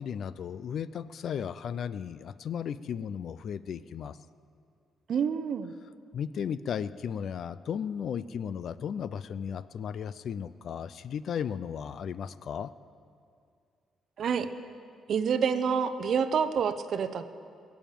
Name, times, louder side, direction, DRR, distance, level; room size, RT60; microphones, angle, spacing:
voice 1, 0.0-4.2 6.1-12.7, left 8 dB, 50° left, 16 dB, 0.4 m, -35 dB
voice 2, 5.1-5.7 14.2-14.5 15.1-17.3, right 6 dB, 50° right, 11 dB, 0.7 m, -27 dB
21.0 x 7.2 x 9.0 m, 2.4 s
cardioid pair, 160°, 0 cm